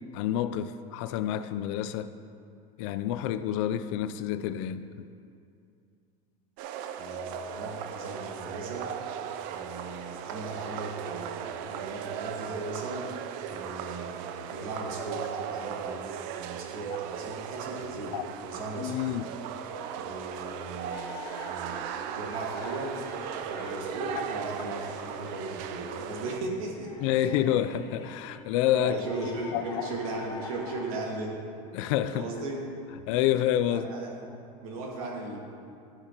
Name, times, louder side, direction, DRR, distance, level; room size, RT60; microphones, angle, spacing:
voice 1, 0.1-2.1 2.8-4.9 18.1-18.2 18.8-19.3 24.2-24.3 27.0-29.0 29.5-29.9 31.7-32.3 33.1-33.9, left 11 dB, 65° left, 12 dB, 0.4 m, -28 dB
sound 1, 6.6-26.4, right 9 dB, 55° right, 0.4 m, -37 dB
voice 2, 7.0-8.9 9.5-13.1 13.5-19.2 19.7-23.0 23.3-26.9 28.8-31.4 32.1-32.6 33.7-34.3 34.6-35.4, right 2 dB, 85° right, -1 dB, 1.7 m, -37 dB
sound 2, 20.9-30.9, left 4 dB, 20° left, 1.1 m, -46 dB
10.5 x 8.6 x 2.9 m, 2.4 s
supercardioid pair, 155°, 18 cm